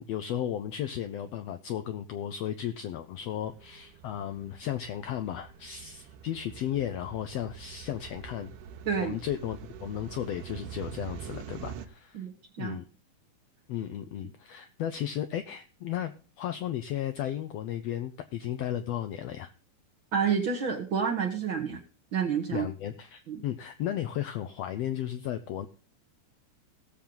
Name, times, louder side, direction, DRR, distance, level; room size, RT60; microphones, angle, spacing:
voice 1, 0.0-8.5 9.0-12.2 12.6-12.8 13.7-19.5 22.5-25.7, left 11 dB, 80° left, 9 dB, 1.5 m, -34 dB
sound 1, 3.2-11.9, right 8 dB, 85° right, 2.3 m, -45 dB
voice 2, 12.1-12.8 20.1-21.8 22.1-22.7 23.3-23.4, right 6 dB, 55° right, 2 dB, 1.5 m, -29 dB
18.0 x 7.2 x 3.8 m, 0.36 s
omnidirectional pair, 3.6 m